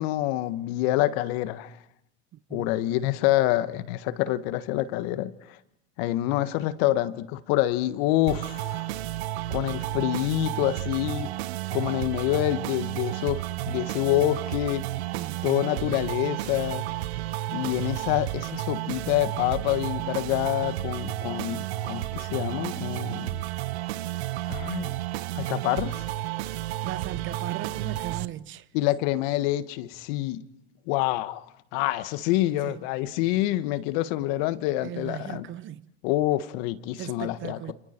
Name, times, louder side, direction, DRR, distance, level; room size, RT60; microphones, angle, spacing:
voice 1, 0.0-1.8 2.5-5.6 6.0-8.9 9.5-11.3 11.7-14.9 15.4-16.8 17.5-23.4 24.5-24.9 25.3-26.0 28.7-30.4 30.9-31.4 31.7-35.4 36.0-37.7, left 15 dB, 60° left, 1.5 m, -27 dB
sound 1, 8.3-28.2, right 15 dB, 75° right, 0.9 m, -32 dB
voice 2, 15.1-15.4 26.8-28.7 32.6-32.8 33.3-33.4 34.8-35.9 37.0-37.7, right 12 dB, 35° right, 1.0 m, -37 dB
30.0 x 29.0 x 4.5 m
hypercardioid pair, 115°, 33 cm